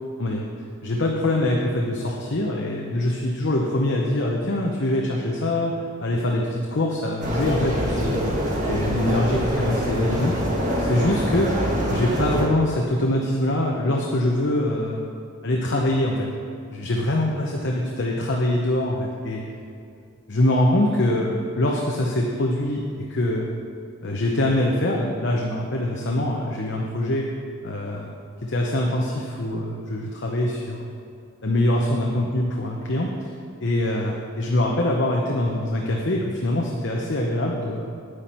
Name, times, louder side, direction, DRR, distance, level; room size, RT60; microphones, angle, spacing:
voice 1, 0.8-5.7 6.0-8.2 8.6-10.3 10.8-11.5 11.9-15.0 15.4-16.3 16.7-19.4 20.3-22.8 23.1-23.4 24.0-27.2 27.6-28.1 28.4-30.9 31.4-33.3 33.6-37.9, left 1 dB, 55° left, -1 dB, 0.9 m, -24 dB
sound 1, 7.2-12.4, equal, 35° right, 1.6 m, -24 dB
10.5 x 9.5 x 4.4 m, 2.4 s
head